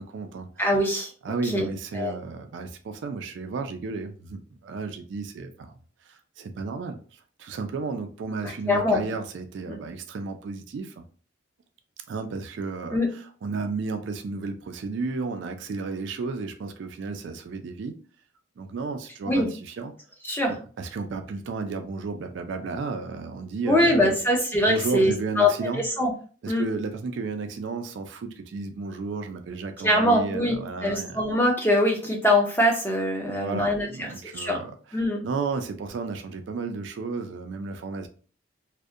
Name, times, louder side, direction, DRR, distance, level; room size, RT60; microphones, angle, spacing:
voice 1, 0.0-0.5 1.2-5.8 6.1-11.0 12.1-18.0 18.6-19.9 20.5-24.2 24.6-25.9 26.4-31.3 33.2-38.1, right 4 dB, 65° right, 0.3 m, -33 dB
voice 2, 0.6-1.1 1.5-1.7 1.9-2.1 8.7-9.0 12.9-13.1 19.3-19.5 20.3-20.5 23.7-26.1 26.5-26.6 29.8-30.6 30.8-33.9 34.3-34.6 34.9-35.2, left 1 dB, 10° left, 0.4 m, -22 dB
2.6 x 2.1 x 2.4 m
head